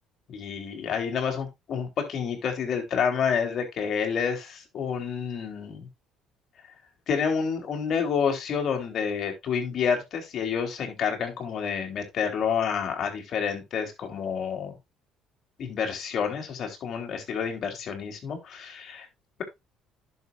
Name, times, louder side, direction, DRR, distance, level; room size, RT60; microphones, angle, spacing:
voice 1, 0.3-5.9 7.1-14.7 15.6-19.1, left 6 dB, 55° left, 3 dB, 3.7 m, -29 dB
11.0 x 7.0 x 2.6 m, 0.21 s
supercardioid pair, 75°, 0 cm